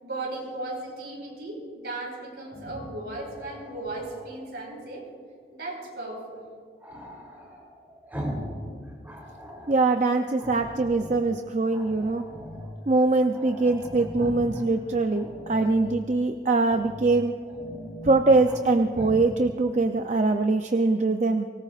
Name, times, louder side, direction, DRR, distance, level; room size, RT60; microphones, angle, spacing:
voice 1, 0.0-5.0 5.5-6.4, right 2 dB, 65° right, -1 dB, 4.9 m, -36 dB
Growling, 2.4-4.4 6.8-8.6 8.9-9.8 10.4-11.3 11.7-12.7 13.0-13.1 13.3-14.6 15.1-15.9 16.6-17.0 17.4-18.6 18.9-19.2, equal, 10° right, 3.1 m, -39 dB
voice 2, 9.7-12.2 12.9-17.3 18.0-21.5, right 3 dB, 40° right, 5 dB, 0.5 m, -23 dB
24.5 x 18.5 x 2.5 m, 2.2 s
head